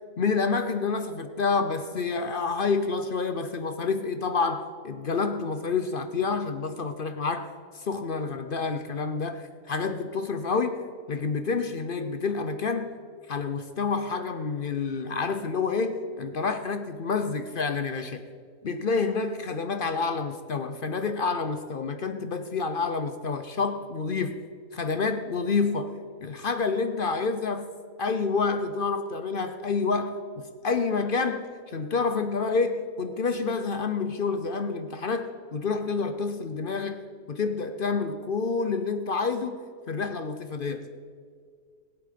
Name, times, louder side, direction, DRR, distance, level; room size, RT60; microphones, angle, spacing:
voice 1, 0.2-10.8 11.1-12.9 13.3-18.2 18.6-24.4 24.7-27.7 28.0-37.0 37.3-39.6 39.9-40.9, left 4 dB, 55° left, 0.6 m, -28 dB
20.5 x 8.3 x 5.1 m
omnidirectional pair, 1.7 m